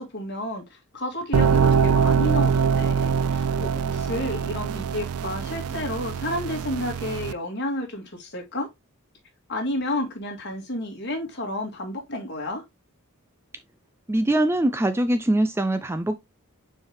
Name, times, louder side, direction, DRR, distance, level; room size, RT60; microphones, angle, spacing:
voice 1, 0.0-8.7 9.5-12.6, left 1 dB, 50° left, 2.1 m, -31 dB
sound 1, 1.3-7.3, right 6 dB, 80° right, 0.4 m, -23 dB
voice 2, 14.1-16.2, right 1 dB, 10° right, 0.4 m, -22 dB
6.2 x 4.6 x 3.4 m
head